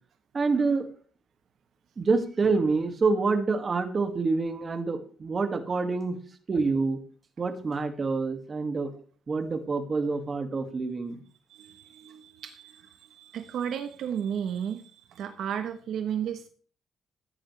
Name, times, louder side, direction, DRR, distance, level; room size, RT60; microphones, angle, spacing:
voice 1, 0.3-0.9 2.0-6.2 6.5-7.0 7.4-8.9 9.3-11.2, right 4 dB, 35° right, 6 dB, 2.3 m, -27 dB
voice 2, 11.5-16.5, right 8 dB, 75° right, 7 dB, 1.2 m, -34 dB
15.5 x 9.8 x 3.4 m, 0.43 s
cardioid pair, 90°, 0 cm